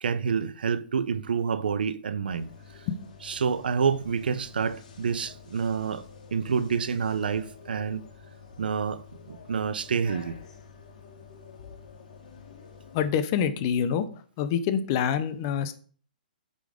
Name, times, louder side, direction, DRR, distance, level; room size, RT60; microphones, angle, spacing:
voice 1, 0.0-2.5 3.3-6.1 6.3-8.1 8.6-9.0 9.3-10.3, right 6 dB, 85° right, 0.7 m, -28 dB
sound 1, 2.3-13.1, left 5 dB, 55° left, 1.6 m, -49 dB
voice 2, 12.9-14.1 14.4-15.7, left 8 dB, 25° left, 0.6 m, -26 dB
8.5 x 3.9 x 4.9 m
hypercardioid pair, 175°, 5 cm